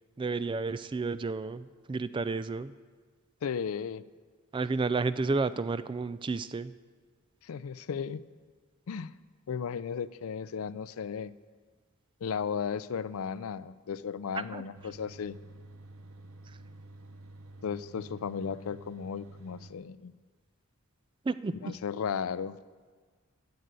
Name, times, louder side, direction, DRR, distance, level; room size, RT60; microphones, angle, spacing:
voice 1, 0.2-2.7 4.5-6.7 14.3-14.6 16.5-16.6 21.2-21.8, right 3 dB, 25° right, 14 dB, 0.3 m, -31 dB
voice 2, 3.4-4.0 7.4-8.3 8.9-9.1 9.5-11.3 12.2-15.4 17.6-20.1 21.6-22.6, left 6 dB, 80° left, 17 dB, 0.4 m, -35 dB
sound 1, 14.7-19.7, right 2 dB, 80° right, 1.0 m, -50 dB
11.5 x 7.9 x 8.1 m, 1.5 s
head